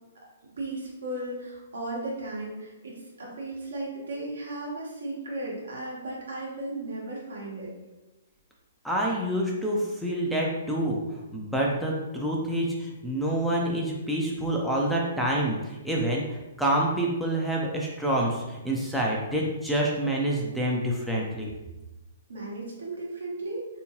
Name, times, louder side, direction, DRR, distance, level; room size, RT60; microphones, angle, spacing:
voice 1, 0.6-7.7 22.3-23.7, right 2 dB, 70° right, -3 dB, 1.2 m, -35 dB
voice 2, 8.8-21.5, right 1 dB, ahead, -4 dB, 0.5 m, -27 dB
3.5 x 2.8 x 2.8 m, 1.1 s
figure-of-eight pair, 120°, 0 cm